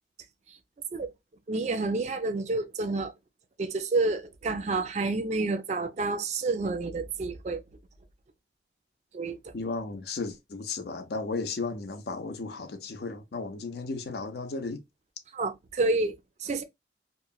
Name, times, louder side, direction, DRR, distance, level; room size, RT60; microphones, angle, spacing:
voice 1, 1.5-3.1 3.6-7.6 9.1-9.5 15.3-16.6, right 3 dB, 40° right, 0.3 m, -29 dB
voice 2, 9.5-14.8, left 3 dB, 60° left, 0.5 m, -34 dB
3.0 x 2.0 x 2.2 m
head